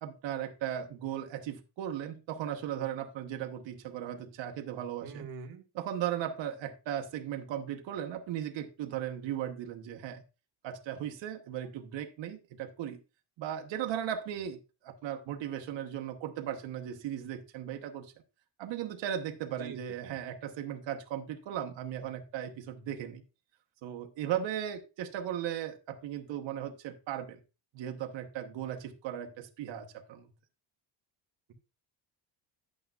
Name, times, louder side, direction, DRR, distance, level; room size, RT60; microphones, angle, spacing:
voice 1, 0.0-5.3 5.7-10.2 10.6-13.0 13.4-18.1 18.6-23.2 23.8-27.4 27.7-30.3, right 10 dB, 80° right, 1.1 m, -37 dB
voice 2, 5.0-5.6 19.6-19.8 20.0-20.2, right 5 dB, 50° right, 1.6 m, -44 dB
10.5 x 8.6 x 2.3 m
cardioid pair, 175°, 44 cm